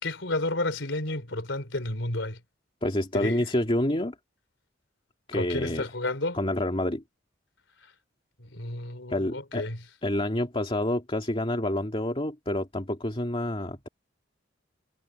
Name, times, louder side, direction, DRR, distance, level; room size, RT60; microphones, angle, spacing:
voice 1, 0.0-2.4 3.1-3.4 5.3-6.4 8.5-9.8, left 2 dB, 75° left, 3.8 m, -31 dB
voice 2, 2.8-4.1 5.3-5.8 6.3-7.0 9.1-9.7 10.0-13.9, left 1 dB, 30° left, 2.5 m, -28 dB
head